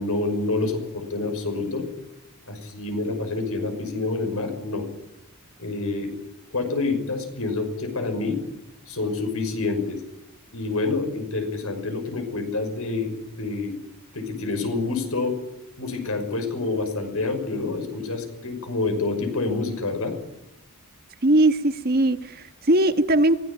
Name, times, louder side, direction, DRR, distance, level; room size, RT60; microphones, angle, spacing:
voice 1, 0.0-1.9 2.5-4.9 5.6-6.1 6.5-8.4 8.9-10.0 10.5-13.7 14.1-15.4 15.8-20.1, left 3 dB, 70° left, 7 dB, 5.9 m, -27 dB
voice 2, 21.2-23.4, right 1 dB, 45° right, 9 dB, 1.5 m, -20 dB
24.0 x 18.0 x 8.9 m, 0.90 s
head